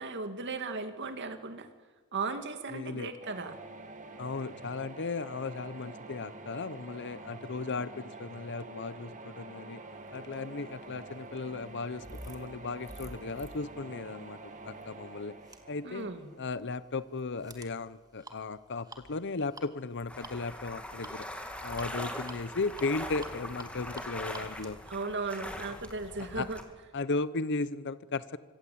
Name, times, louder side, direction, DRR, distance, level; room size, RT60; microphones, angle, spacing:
voice 1, 0.0-1.7 2.1-3.6 15.8-16.3 24.9-26.6, right 3 dB, 55° right, 8 dB, 2.6 m, -36 dB
voice 2, 2.7-3.1 4.2-9.8 10.1-15.3 15.7-16.1 16.4-21.3 21.6-24.8 26.3-26.4 26.9-28.4, left 3 dB, 55° left, 15 dB, 0.9 m, -36 dB
sound 1, 3.2-17.0, right 3 dB, 35° right, 2.3 m, -47 dB
sound 2, 10.4-26.0, right 2 dB, 15° right, 2.4 m, -51 dB
sound 3, 20.1-26.6, left 1 dB, 5° left, 3.0 m, -41 dB
26.0 x 25.0 x 8.7 m, 1.4 s
head